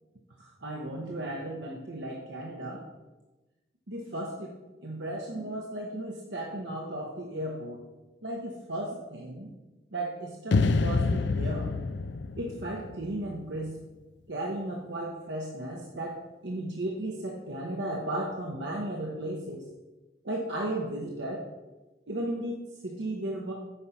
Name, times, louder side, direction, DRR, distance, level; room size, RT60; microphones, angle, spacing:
voice 1, 0.4-2.8 3.9-4.5 4.8-7.8 8.2-9.5 9.9-11.7 12.4-13.7 14.3-16.2 16.4-19.6 20.2-21.4 22.1-23.5, right 1 dB, 80° right, -1 dB, 1.0 m, -35 dB
sound 1, 10.5-13.7, left 3 dB, 75° left, 0.4 m, -28 dB
8.7 x 5.1 x 5.7 m, 1.1 s
head